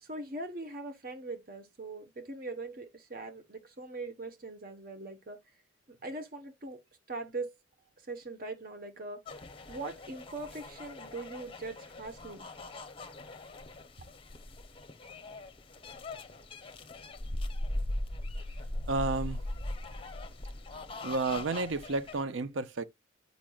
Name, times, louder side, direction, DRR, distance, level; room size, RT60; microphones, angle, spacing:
voice 1, 0.0-5.4 5.9-6.8 7.1-7.5 8.1-9.2 9.7-12.5 14.0-14.1, right 2 dB, 45° right, 1.1 m, -41 dB
sound 1, 9.3-22.2, left 1 dB, 25° left, 0.7 m, -40 dB
voice 2, 18.9-19.4 21.0-22.8, right 3 dB, 75° right, 0.6 m, -31 dB
8.7 x 5.2 x 2.3 m
head